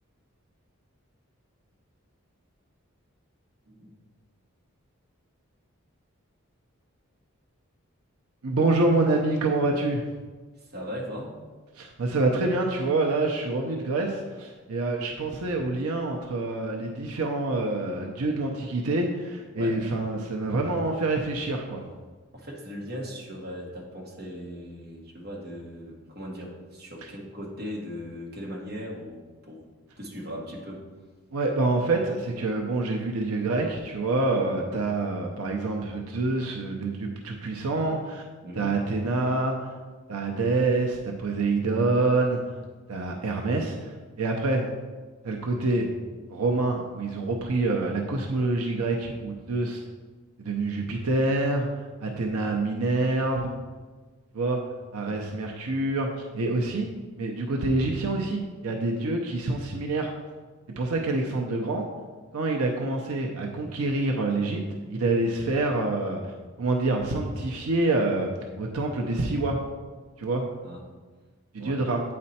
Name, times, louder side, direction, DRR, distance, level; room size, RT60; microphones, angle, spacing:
voice 1, 3.6-3.9 10.6-11.4 19.5-19.8 22.3-29.6 30.0-30.8 38.4-38.7 55.1-55.2 70.6-70.9 71.6-71.8, equal, 45° right, -3 dB, 1.4 m, -38 dB
voice 2, 8.4-10.0 11.8-21.8 31.3-38.2 38.6-39.6 40.1-42.4 42.9-44.7 45.2-45.9 46.3-49.8 50.4-53.5 54.3-54.6 54.9-56.9 57.2-60.1 60.8-61.9 62.3-66.3 66.6-68.3 68.6-69.6 70.2-70.4 71.5-72.0, right 2 dB, 85° right, 1 dB, 0.7 m, -26 dB
8.7 x 4.2 x 4.2 m, 1.4 s
head